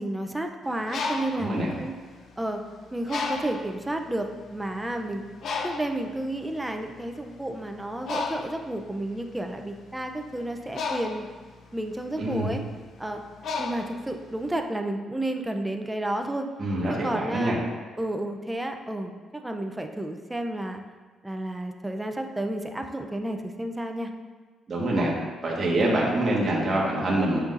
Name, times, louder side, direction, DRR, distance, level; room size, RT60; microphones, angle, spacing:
voice 1, 0.0-1.9 2.4-2.6 2.9-5.2 5.6-11.2 11.7-12.6 13.0-13.2 13.6-16.5 17.0-17.6 18.0-20.8 21.2-24.1, right 1 dB, 10° right, 4 dB, 0.6 m, -31 dB
Bird, 0.7-2.5 3.1-3.8 4.4-4.6 4.8-14.6, left 4 dB, 60° left, 0.7 m, -34 dB
voice 2, 1.3-1.7 12.2-12.5 16.6-17.6 24.7-25.1 25.4-27.4, right 1 dB, 40° right, -4 dB, 1.6 m, -25 dB
8.7 x 5.5 x 2.6 m, 1.4 s
cardioid pair, 90°, 0 cm